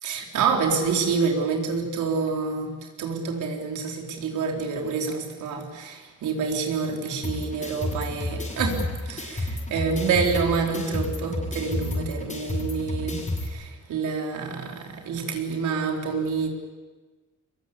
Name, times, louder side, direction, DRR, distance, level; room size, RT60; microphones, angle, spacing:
voice 1, 0.0-2.7 3.0-8.8 9.1-13.2 13.5-16.5, right 5 dB, 80° right, 1 dB, 4.3 m, -27 dB
sound 1, 7.2-13.5, left 1 dB, 25° left, 7.5 m, -31 dB
23.0 x 22.5 x 8.5 m, 1.3 s
cardioid pair, 90°, 30 cm